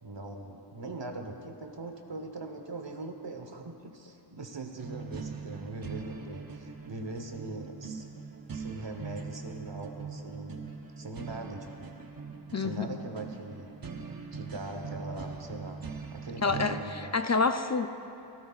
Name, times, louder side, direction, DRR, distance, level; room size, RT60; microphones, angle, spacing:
voice 1, 0.0-8.0 8.5-11.9 12.6-13.7 14.3-15.8 16.1-17.3, right 2 dB, 70° right, 4 dB, 1.2 m, -41 dB
sound 1, 4.8-16.8, right 5 dB, 50° right, 0.8 m, -41 dB
voice 2, 12.5-13.0 16.4-17.9, left 4 dB, 40° left, 8 dB, 0.5 m, -28 dB
16.5 x 15.0 x 2.4 m, 2.8 s
wide cardioid pair, 40°, 45 cm